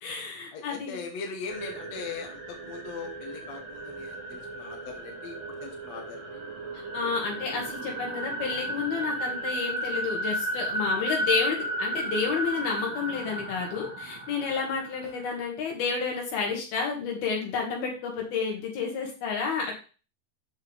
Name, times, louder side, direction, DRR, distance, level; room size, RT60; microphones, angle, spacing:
voice 1, 0.0-1.0 6.7-19.7, left 5 dB, 55° left, 0 dB, 3.7 m, -30 dB
voice 2, 0.5-6.4, left 5 dB, 80° left, 2 dB, 1.5 m, -40 dB
sound 1, 1.5-15.5, right 1 dB, 40° right, 2.0 m, -34 dB
8.4 x 6.3 x 3.6 m, 0.35 s
omnidirectional pair, 5.6 m